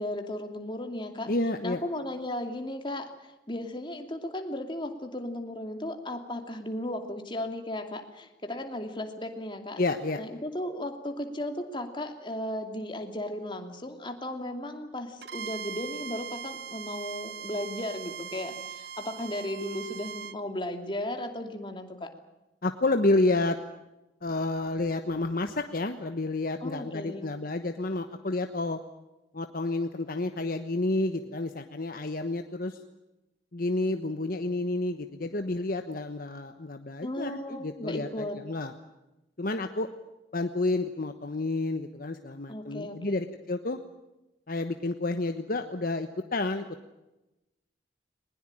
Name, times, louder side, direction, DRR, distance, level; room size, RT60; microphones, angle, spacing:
voice 1, 0.0-1.3 1.6-9.8 10.2-22.1 26.6-27.3 37.0-38.4 42.5-43.2, left 1 dB, 25° left, 5 dB, 2.7 m, -35 dB
voice 2, 1.3-1.8 9.8-10.2 22.6-23.6 24.2-28.8 29.3-32.8 33.5-38.7 39.4-39.9 40.3-43.8 44.5-46.6, left 2 dB, 55° left, 7 dB, 1.2 m, -30 dB
Bowed string instrument, 15.2-20.4, right 7 dB, 70° right, 0.8 m, -40 dB
21.0 x 20.5 x 8.9 m, 0.98 s
head